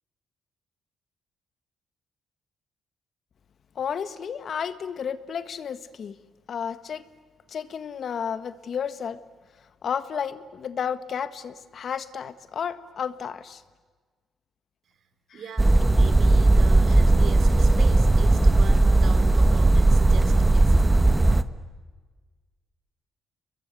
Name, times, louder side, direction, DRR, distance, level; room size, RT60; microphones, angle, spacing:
voice 1, 3.7-6.1 6.5-7.0 7.5-9.2 9.8-13.6 15.3-15.4, left 7 dB, 55° left, 12 dB, 1.6 m, -32 dB
voice 2, 15.3-21.1, right 5 dB, 60° right, 9 dB, 3.8 m, -41 dB
sound 1, 15.6-21.4, right 2 dB, 15° right, 1.2 m, -18 dB
30.0 x 22.5 x 8.3 m, 1.4 s
cardioid pair, 90°, 0 cm